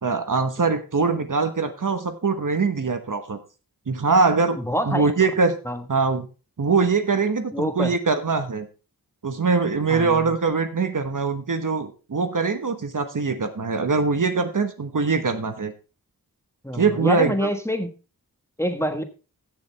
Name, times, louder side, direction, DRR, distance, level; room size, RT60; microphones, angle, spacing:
voice 1, 0.0-3.4 3.9-4.6 4.8-5.6 5.9-6.3 6.6-8.7 9.2-15.7 16.7-17.5, right 4 dB, 60° right, 8 dB, 1.3 m, -22 dB
voice 2, 4.6-5.1 5.6-5.8 7.5-7.9 9.9-10.3 16.6-17.9 18.6-19.0, equal, 5° left, 6 dB, 1.4 m, -26 dB
15.5 x 7.1 x 3.4 m, 0.33 s
wide cardioid pair, 60°, 36 cm